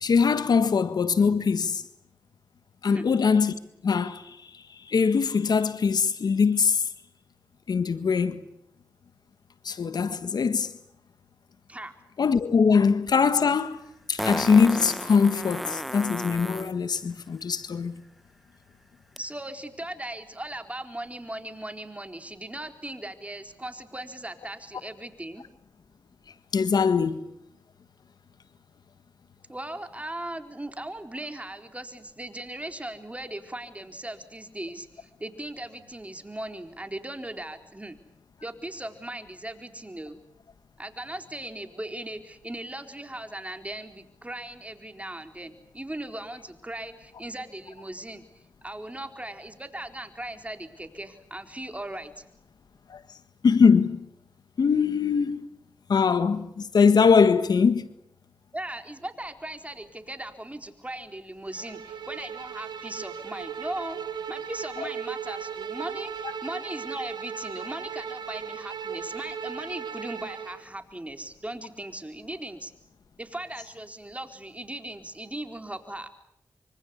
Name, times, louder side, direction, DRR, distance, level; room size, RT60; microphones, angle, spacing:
voice 1, 0.0-1.8 2.8-3.5 3.8-4.4 4.9-6.8 7.7-8.4 9.6-10.7 12.2-13.8 14.1-18.0 26.5-27.2 52.9-53.0 53.4-54.1 54.6-55.5 55.9-57.9, left 5 dB, 75° left, 1.6 m, -22 dB
Fart, 13.1-13.2 14.2-16.7 19.2-19.3, equal, ahead, 1.0 m, -33 dB
voice 2, 19.2-25.4 29.5-38.0 38.4-40.2 40.8-52.2 58.5-64.0 64.3-72.7 73.2-76.1, right 1 dB, 20° right, 4.2 m, -38 dB
Bowed string instrument, 61.5-70.6, right 7 dB, 85° right, 1.8 m, -37 dB
25.5 x 25.0 x 8.4 m
cardioid pair, 40°, 7 cm